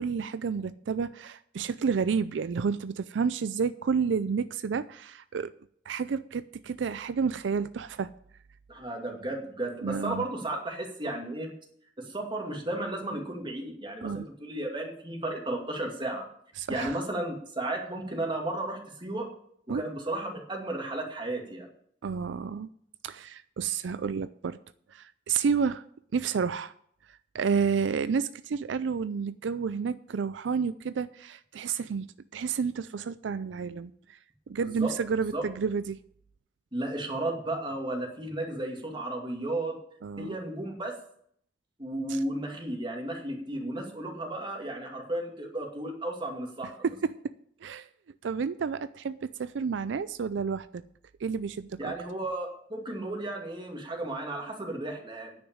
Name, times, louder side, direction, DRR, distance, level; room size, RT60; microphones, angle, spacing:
voice 1, 0.0-5.5 5.9-8.1 9.8-10.3 14.0-14.2 16.6-17.0 19.7-19.8 22.0-22.7 23.0-24.6 24.9-25.8 26.1-26.7 27.3-32.1 32.3-33.9 34.5-36.0 40.0-40.4 42.1-42.2 46.8-47.2 47.6-47.9 48.2-50.8 51.2-51.9, right 6 dB, 90° right, 0.4 m, -30 dB
voice 2, 8.7-11.5 12.0-16.3 16.7-19.3 19.7-21.7 34.8-35.0 35.3-35.4 36.7-39.8 40.2-41.0 41.8-46.8 51.8-55.3, right 1 dB, 25° right, 2.4 m, -34 dB
10.0 x 6.1 x 8.7 m
head